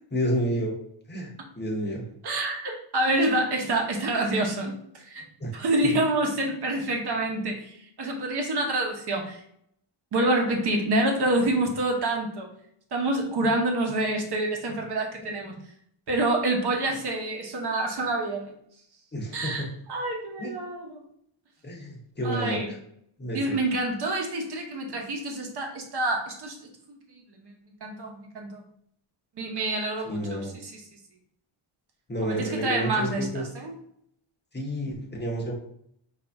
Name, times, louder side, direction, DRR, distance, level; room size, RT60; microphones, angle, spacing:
voice 1, 0.1-0.7 1.1-2.0 5.4-5.5 15.2-15.5 19.1-19.7 20.4-20.5 21.6-22.8 23.2-23.6 30.0-30.5 32.1-33.4 34.5-35.5, equal, 20° left, -1 dB, 0.8 m, -30 dB
voice 2, 2.2-5.2 5.5-9.4 10.1-12.5 12.9-15.6 16.1-18.5 19.3-21.0 22.2-22.7 23.3-26.6 26.9-27.5 27.8-28.6 29.4-30.8 32.2-33.7, right 2 dB, 50° right, 2 dB, 1.0 m, -27 dB
5.2 x 2.6 x 3.4 m, 0.70 s
wide cardioid pair, 175°, 50 cm